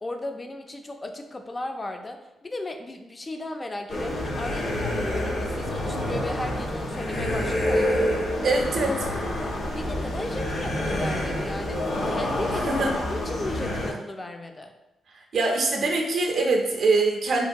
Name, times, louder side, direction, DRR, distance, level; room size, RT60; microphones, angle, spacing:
voice 1, 0.0-8.0 9.6-14.7, left 2 dB, 30° left, 5 dB, 0.4 m, -35 dB
sound 1, 3.9-13.9, left 1 dB, 70° left, 0.7 m, -27 dB
voice 2, 8.4-9.1 12.7-12.9 15.3-17.5, right 3 dB, 70° right, 0 dB, 0.4 m, -23 dB
2.9 x 2.2 x 2.6 m, 0.95 s
supercardioid pair, 55°, 0 cm